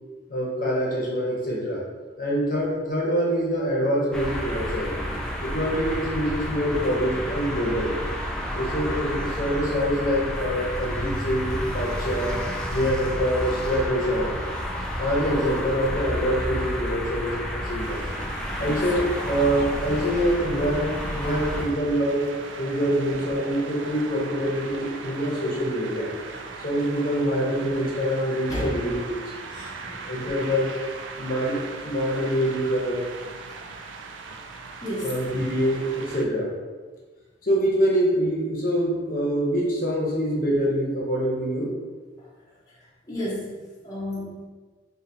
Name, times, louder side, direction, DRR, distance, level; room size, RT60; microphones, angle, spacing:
voice 1, 0.3-1.8 2.2-4.9 5.4-7.9 8.5-12.4 12.7-14.3 15.0-18.0 18.6-22.3 22.6-26.1 26.6-29.2 29.5-29.7 30.1-30.7 31.1-33.0 35.0-36.5 37.4-41.7, equal, 50° left, -4 dB, 0.8 m, -25 dB
sound 1, 4.1-21.6, equal, 5° left, 0.3 m, -30 dB
sound 2, 17.8-36.2, right 4 dB, 90° right, 0.3 m, -39 dB
voice 2, 18.6-19.0 28.5-28.7 29.6-30.1 34.8-35.2 43.1-44.5, equal, 20° left, -8 dB, 0.7 m, -33 dB
2.8 x 2.7 x 3.8 m, 1.3 s
head